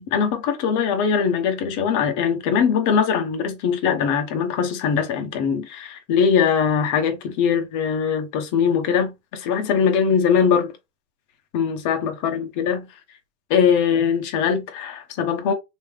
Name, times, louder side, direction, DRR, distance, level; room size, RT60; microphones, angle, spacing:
voice 1, 0.0-10.7 11.5-12.9 13.5-15.5, left 7 dB, 35° left, 1.1 m, -21 dB
3.1 x 3.1 x 3.2 m
hypercardioid pair, 125°, 50 cm